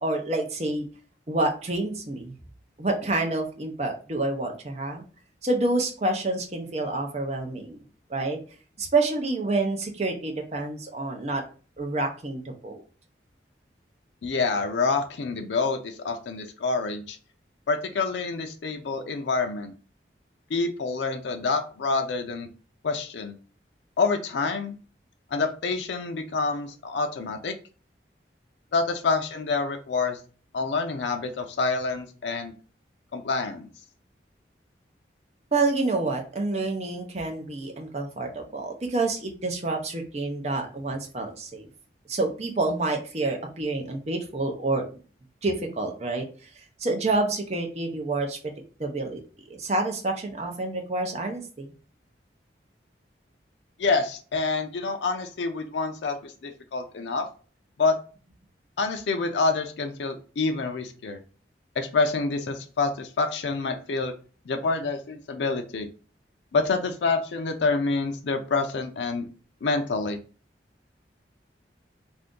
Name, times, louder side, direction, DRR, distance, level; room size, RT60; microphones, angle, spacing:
voice 1, 0.0-0.8 1.3-2.3 2.8-5.0 5.4-7.8 8.1-8.4 8.8-11.4 11.8-12.8 35.5-41.7 42.1-44.8 45.4-46.3 46.8-48.4 48.8-49.2 49.5-51.7, right 2 dB, 35° right, 3 dB, 0.6 m, -28 dB
voice 2, 14.2-17.2 17.7-19.7 20.5-22.5 22.8-23.4 24.0-24.8 25.3-27.6 28.7-30.2 30.5-32.5 33.1-33.7 53.8-57.3 57.8-58.0 58.8-61.2 61.8-64.1 64.5-65.9 66.5-69.2 69.6-70.2, left 4 dB, 80° left, 5 dB, 0.4 m, -27 dB
2.6 x 2.5 x 3.6 m, 0.38 s
head